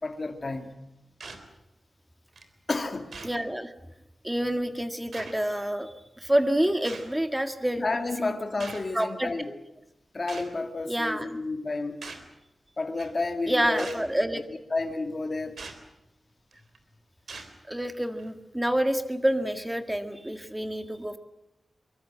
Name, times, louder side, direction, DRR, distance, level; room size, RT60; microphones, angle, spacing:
voice 1, 0.0-0.8 2.7-3.2 7.8-9.5 10.1-12.0 12.8-14.0 14.7-15.6, left 3 dB, 35° left, 5 dB, 2.5 m, -31 dB
sound 1, 1.2-1.4 2.4-2.5 3.1-3.4 4.3-4.4 5.1-5.3 6.8-7.1 8.6-8.9 10.3-10.5 12.0-12.3 13.0-13.2 13.8-14.1 15.6-15.8 16.5-16.8 17.3-17.5 18.2-18.3, right 4 dB, 70° right, 3.6 m, -41 dB
voice 2, 3.2-3.7 4.2-7.8 8.2-8.3 8.9-9.6 10.9-11.4 13.5-14.4 17.7-21.2, right 1 dB, 10° right, 8 dB, 1.8 m, -28 dB
24.0 x 23.5 x 7.6 m, 0.91 s
wide cardioid pair, 150°, 0 cm